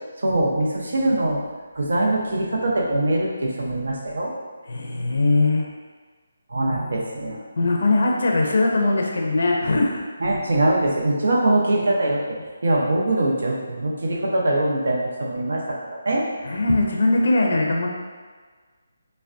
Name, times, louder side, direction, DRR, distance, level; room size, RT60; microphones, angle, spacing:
voice 1, 0.2-1.4 1.8-4.3 6.5-7.4 10.2-12.4 12.6-16.2, right 1 dB, 75° right, -2 dB, 0.7 m, -22 dB
voice 2, 4.7-5.7 7.6-10.0 16.4-17.9, left 2 dB, 60° left, 0 dB, 0.4 m, -20 dB
3.3 x 2.2 x 2.5 m, 1.5 s
hypercardioid pair, 170°, 0 cm